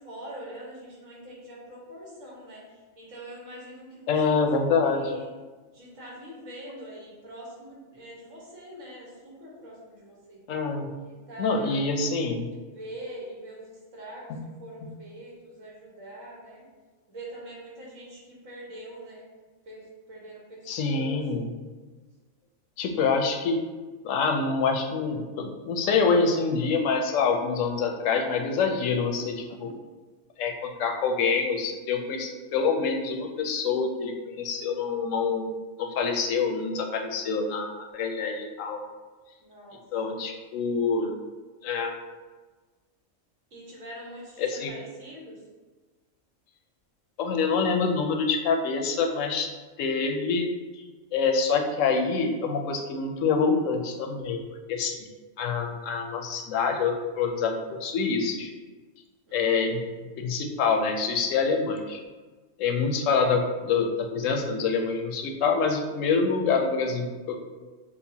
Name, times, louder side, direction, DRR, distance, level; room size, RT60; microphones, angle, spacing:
voice 1, 0.0-4.2 4.8-5.3 5.7-10.4 10.9-12.1 12.7-16.6 17.1-19.3 19.6-21.2 34.5-35.0 39.4-39.8 43.5-45.4 47.6-48.0 59.3-59.7, right 1 dB, 80° right, -4 dB, 1.6 m, -44 dB
voice 2, 4.1-5.2 10.5-10.9 11.4-12.5 14.3-14.4 20.7-21.5 22.8-23.6 24.0-29.7 30.4-35.4 35.8-38.8 39.9-41.1 41.6-41.9 44.4-44.7 47.2-49.5 49.8-50.5 50.8-50.9 51.1-54.4 54.7-55.0 55.4-58.5 59.3-62.0 62.6-67.4, left 5 dB, 85° left, 4 dB, 1.0 m, -26 dB
6.5 x 2.4 x 2.7 m, 1.3 s
omnidirectional pair, 1.3 m